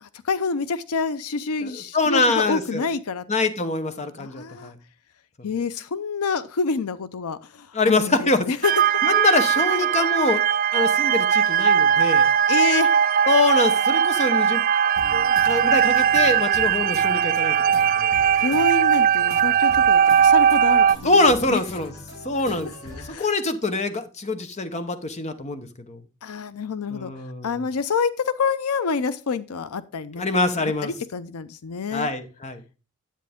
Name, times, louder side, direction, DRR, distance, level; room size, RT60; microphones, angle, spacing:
voice 1, 0.0-3.2 4.2-4.7 5.4-8.7 12.5-12.9 18.4-21.2 21.5-21.6 23.0-23.3 26.2-27.1 27.4-30.2 30.8-32.1, left 4 dB, 80° left, 14 dB, 0.6 m, -27 dB
voice 2, 1.6-2.8 3.3-4.7 5.4-5.5 7.7-8.5 9.0-10.4 10.7-12.3 13.2-14.6 15.1-18.1 21.0-21.9 22.2-26.0 26.9-27.6 30.1-30.9 31.9-32.6, left 2 dB, 30° left, 9 dB, 0.9 m, -24 dB
sound 1, 8.6-21.0, right 8 dB, 40° right, 0.4 m, -19 dB
sound 2, 14.8-23.1, equal, 55° left, 6.7 m, -41 dB
10.0 x 8.2 x 3.5 m, 0.33 s
head